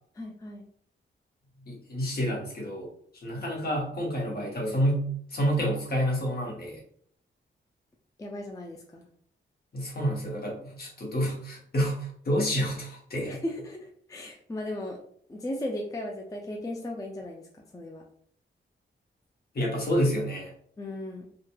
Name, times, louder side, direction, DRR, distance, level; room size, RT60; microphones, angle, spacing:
voice 1, 0.1-0.7 8.2-9.1 13.3-15.0 15.3-18.0 20.8-21.3, left 1 dB, 15° left, 0 dB, 0.4 m, -36 dB
voice 2, 1.7-2.9 3.1-6.8 9.7-13.4 19.5-20.5, equal, 50° left, -2 dB, 1.0 m, -29 dB
2.7 x 2.3 x 2.2 m, 0.62 s
cardioid pair, 75°, 21 cm